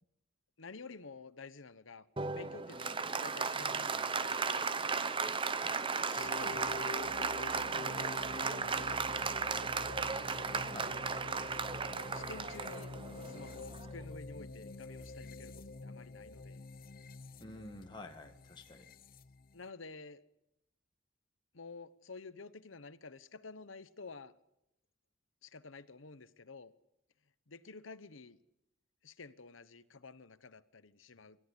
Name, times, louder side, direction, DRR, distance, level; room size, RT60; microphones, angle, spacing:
voice 1, 0.6-4.7 6.1-8.1 8.4-9.8 12.1-12.9 13.2-16.7 19.5-20.2 21.5-24.3 25.4-26.7 27.5-28.4 29.0-31.4, left 4 dB, 80° left, 1.1 m, -51 dB
Applause, 2.2-14.0, right 5 dB, 25° right, 0.8 m, -36 dB
sound 1, 6.2-19.7, left 3 dB, 45° left, 0.8 m, -47 dB
voice 2, 10.7-11.0 17.4-18.9, left 2 dB, 25° left, 1.7 m, -49 dB
26.0 x 13.0 x 9.9 m
head